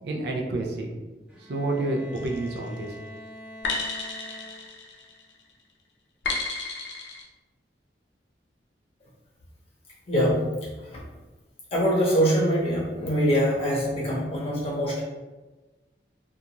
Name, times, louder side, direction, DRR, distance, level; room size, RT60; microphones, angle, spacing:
voice 1, 0.0-0.9 1.4-2.9, right 2 dB, 65° right, 1 dB, 0.4 m, -29 dB
Bowed string instrument, 1.3-5.0, equal, 5° right, 0.4 m, -45 dB
sound 1, 2.1-2.6 3.6-5.3 6.2-7.2, left 3 dB, 80° left, 0.5 m, -32 dB
voice 2, 10.1-10.4 10.8-11.0 11.7-15.1, equal, 35° left, -5 dB, 0.7 m, -24 dB
2.4 x 2.3 x 2.9 m, 1.2 s
head